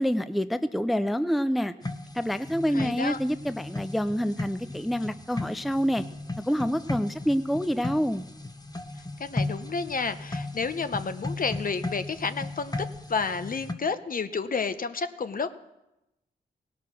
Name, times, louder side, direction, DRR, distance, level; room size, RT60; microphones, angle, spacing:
voice 1, 0.0-1.7 2.1-6.0 6.4-8.2, equal, ahead, 12 dB, 0.5 m, -27 dB
sound 1, 1.8-13.7, left 2 dB, 20° left, 1.0 m, -36 dB
voice 2, 2.7-3.2 9.2-12.7 13.1-15.5, left 5 dB, 45° left, 11 dB, 0.8 m, -30 dB
17.5 x 6.1 x 6.1 m, 0.92 s
supercardioid pair, 50°, 19 cm